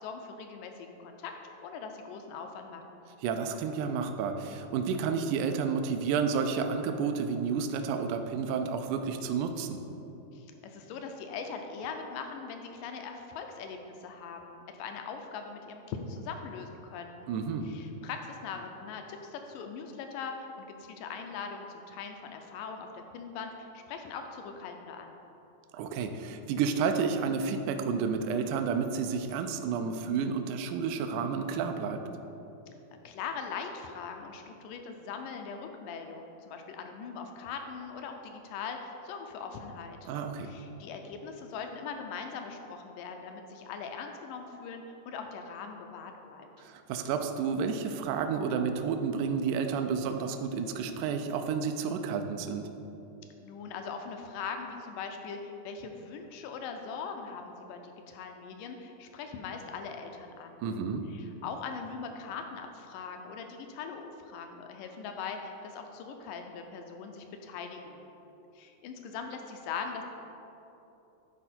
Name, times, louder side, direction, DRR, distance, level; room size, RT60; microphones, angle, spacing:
voice 1, 0.0-3.0 10.3-17.3 17.6-25.2 33.0-40.1 40.4-46.5 53.4-60.6 61.1-68.1 68.6-70.0, left 5 dB, 80° left, 5 dB, 2.0 m, -41 dB
voice 2, 3.2-9.8 17.3-17.7 25.7-32.0 40.1-40.5 46.6-52.6 60.6-61.1, right 6 dB, 90° right, 6 dB, 1.7 m, -31 dB
11.0 x 4.4 x 4.3 m, 3.0 s
omnidirectional pair, 4.1 m